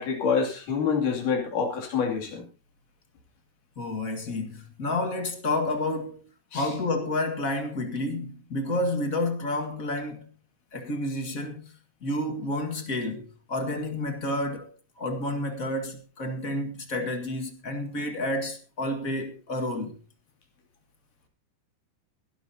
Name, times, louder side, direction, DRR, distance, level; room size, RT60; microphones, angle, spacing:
voice 1, 0.0-2.4 6.5-6.7, left 6 dB, 65° left, 4.3 m, -27 dB
voice 2, 3.8-6.2 6.5-10.3 10.7-11.6 12.0-14.7 15.0-20.0, left 1 dB, 30° left, 1.7 m, -30 dB
22.0 x 12.5 x 2.8 m
omnidirectional pair, 3.9 m